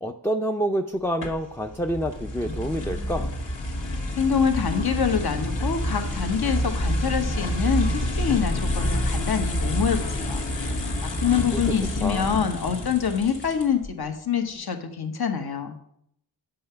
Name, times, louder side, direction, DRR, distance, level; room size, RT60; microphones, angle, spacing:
voice 1, 0.0-3.3 11.3-11.6 12.0-12.3, equal, 5° left, 5 dB, 0.4 m, -28 dB
sound 1, 1.2-13.9, left 1 dB, 75° left, 1.8 m, -28 dB
voice 2, 4.1-10.4 10.8-15.7, left 7 dB, 55° left, 6 dB, 1.1 m, -26 dB
7.8 x 5.5 x 5.6 m, 0.73 s
wide cardioid pair, 65°, 44 cm